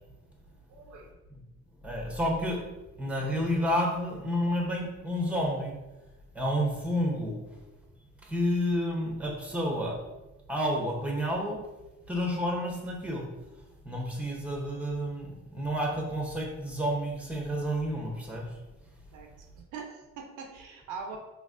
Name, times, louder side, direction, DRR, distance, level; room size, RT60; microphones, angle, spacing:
voice 1, 0.7-1.1 19.1-19.5 19.7-21.2, right 5 dB, 85° right, 2 dB, 0.7 m, -42 dB
voice 2, 1.8-2.6 3.0-5.8 6.3-7.4 8.2-9.9 10.5-11.6 12.1-13.3 13.8-18.5, equal, 5° right, -1 dB, 0.9 m, -30 dB
4.0 x 2.8 x 2.5 m, 1.0 s
cardioid pair, 90°, 30 cm